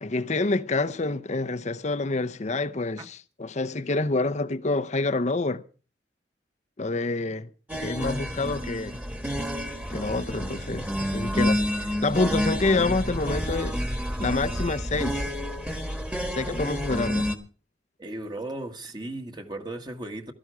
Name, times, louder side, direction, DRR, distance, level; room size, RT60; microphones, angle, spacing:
voice 1, 0.0-5.6 6.8-7.5 7.8-9.0 9.9-13.8 14.2-15.3 16.3-17.3, left 3 dB, 40° left, 0.7 m, -27 dB
sound 1, 7.7-17.4, equal, 5° right, 1.6 m, -29 dB
voice 2, 18.0-20.3, right 1 dB, 25° right, 1.5 m, -36 dB
17.0 x 13.5 x 4.9 m
head